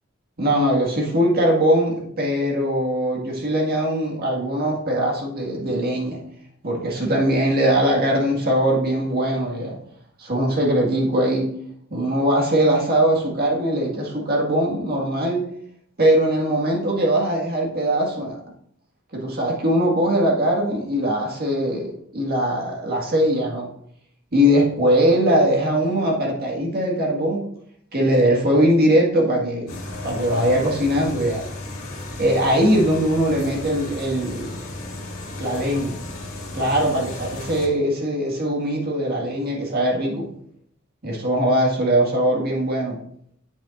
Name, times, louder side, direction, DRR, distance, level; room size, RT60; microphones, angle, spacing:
voice 1, 0.4-6.2 6.6-9.8 10.2-11.5 11.9-15.5 16.0-18.4 19.1-23.7 24.3-27.5 27.9-29.8 30.0-31.5 32.2-34.6 35.4-35.9 36.5-40.3 41.0-43.0, equal, 45° right, -1 dB, 1.9 m, -21 dB
sound 1, 29.7-37.7, left 2 dB, 80° left, 2.2 m, -34 dB
8.4 x 7.3 x 2.6 m, 0.68 s
head